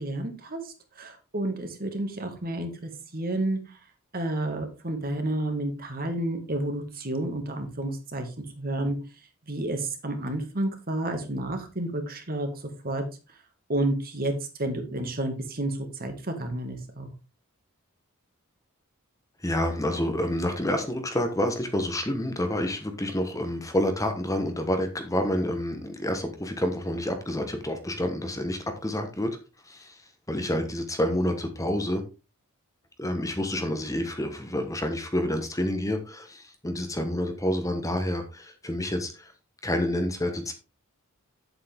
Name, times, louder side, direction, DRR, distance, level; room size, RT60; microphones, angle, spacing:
voice 1, 0.0-3.8 4.1-8.3 8.6-9.0 9.5-12.5 12.8-13.0 13.7-14.3 14.6-17.1, right 1 dB, 45° right, 5 dB, 2.0 m, -30 dB
voice 2, 19.4-29.4 29.6-30.0 30.3-32.0 33.0-39.3 39.6-40.5, left 1 dB, 15° left, 6 dB, 1.2 m, -28 dB
8.6 x 7.9 x 3.6 m, 0.29 s
head